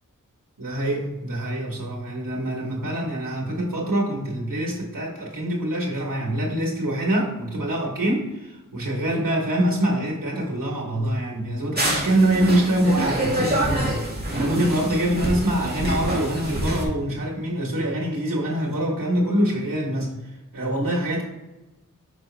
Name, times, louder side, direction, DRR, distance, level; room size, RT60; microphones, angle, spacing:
voice 1, 0.6-13.9 14.3-20.1 20.5-21.2, right 1 dB, 90° right, -4 dB, 1.5 m, -24 dB
sound 1, 11.7-16.8, right 1 dB, 30° right, 2.0 m, -26 dB
6.0 x 5.0 x 3.3 m, 1.0 s
wide cardioid pair, 70°, 32 cm